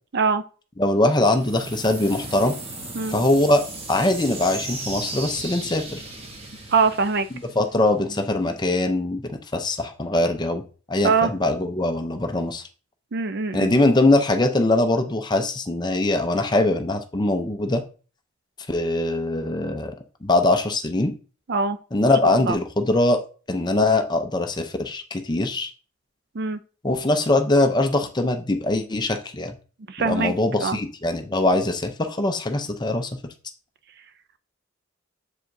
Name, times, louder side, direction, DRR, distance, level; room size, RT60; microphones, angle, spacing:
voice 1, 0.8-2.6 3.1-3.6 3.9-6.0 7.3-12.6 13.5-17.8 18.7-19.9 20.2-21.1 21.9-23.2 23.5-25.7 26.8-29.6 30.0-33.1, left 2 dB, 20° left, 6 dB, 0.5 m, -22 dB
sound 1, 1.2-8.1, right 2 dB, 25° right, 0.9 m, -36 dB
voice 2, 6.7-7.3 11.0-11.3 13.1-13.7 21.5-21.8 22.4-22.6 26.4-26.6 29.9-30.3 30.6-30.8, right 4 dB, 50° right, 11 dB, 0.4 m, -22 dB
7.3 x 4.9 x 2.6 m, 0.37 s
head